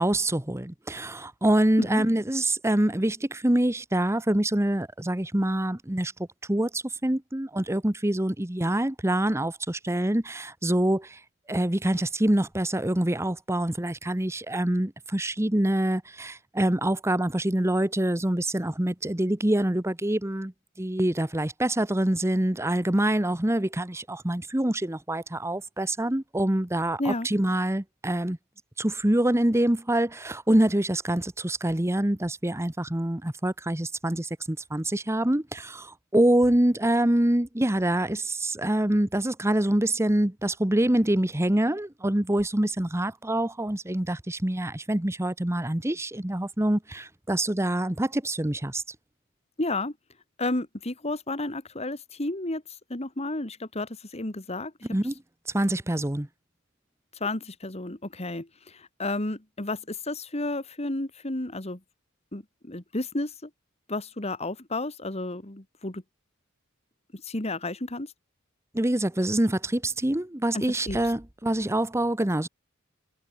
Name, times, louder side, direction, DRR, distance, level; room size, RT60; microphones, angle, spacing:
voice 1, 0.0-6.1 6.5-11.2 11.5-20.5 20.8-28.4 28.8-48.8 54.9-55.1 55.5-56.3 68.7-72.5, right 1 dB, 15° right, 1.0 m, -25 dB
voice 2, 49.6-49.9 50.4-52.6 52.9-54.7 57.2-61.8 62.3-63.5 63.9-66.0 67.1-68.1 70.5-71.0, left 2 dB, 30° left, 2.0 m, -32 dB
head